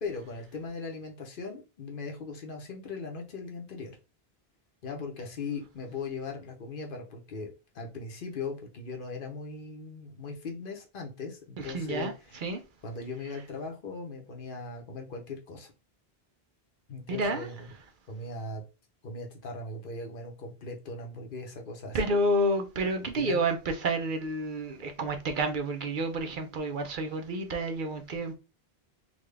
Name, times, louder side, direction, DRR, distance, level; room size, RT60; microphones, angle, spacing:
voice 1, 0.0-4.0 4.8-12.4 12.8-15.7 16.9-17.7 18.1-18.6 19.0-22.0 23.1-23.4, left 3 dB, 60° left, 1.0 m, -39 dB
voice 2, 11.6-12.1 12.4-12.6 17.1-17.5 21.9-28.3, right 1 dB, 60° right, 0.7 m, -29 dB
3.7 x 2.3 x 3.3 m
omnidirectional pair, 1.0 m